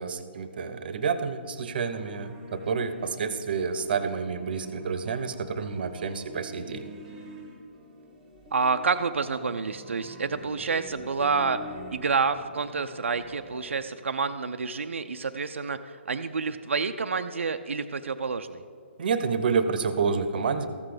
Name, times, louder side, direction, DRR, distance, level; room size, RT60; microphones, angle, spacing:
voice 1, 0.0-6.8 19.0-20.7, right 5 dB, 50° right, 11 dB, 0.7 m, -29 dB
sound 1, 1.9-13.8, left 1 dB, 5° right, 1.0 m, -47 dB
voice 2, 8.5-11.6 11.9-18.6, right 5 dB, 90° right, 7 dB, 0.4 m, -28 dB
14.0 x 6.0 x 4.9 m, 2.3 s
hypercardioid pair, 160°, 7 cm